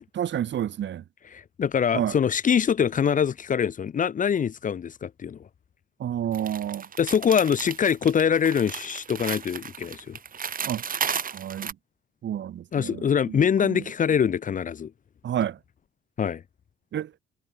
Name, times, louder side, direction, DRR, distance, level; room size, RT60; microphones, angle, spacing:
voice 1, 0.1-1.0 1.9-2.2 6.0-6.9 10.7-10.8 11.3-11.8 12.2-13.9 15.2-15.6 16.9-17.1, right 10 dB, 65° right, 4.1 m, -30 dB
voice 2, 1.3-5.4 7.0-10.2 12.7-14.9 16.2-16.4, left 7 dB, 40° left, 0.7 m, -24 dB
sound 1, 6.3-11.7, right 7 dB, 45° right, 2.5 m, -34 dB
cardioid pair, 90°, 20 cm